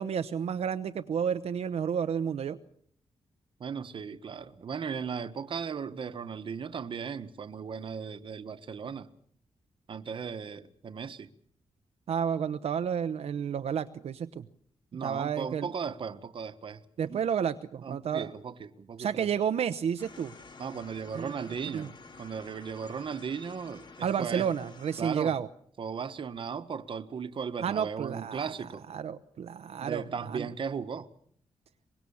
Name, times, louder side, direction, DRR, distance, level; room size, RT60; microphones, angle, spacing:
voice 1, 0.0-2.6 12.1-14.4 15.0-15.7 17.0-18.3 19.0-20.3 21.1-21.3 21.7-21.9 24.0-25.5 27.6-28.5 28.9-30.5, right 8 dB, 70° right, 0.9 m, -31 dB
voice 2, 3.6-9.1 9.9-11.3 14.9-16.8 17.1-17.2 17.8-19.3 20.6-24.5 25.0-25.4 25.8-28.9 29.8-31.1, right 6 dB, 50° right, 1.4 m, -37 dB
sound 1, 20.0-25.0, left 3 dB, 45° left, 3.1 m, -51 dB
24.5 x 22.0 x 7.2 m
wide cardioid pair, 165°, 11 cm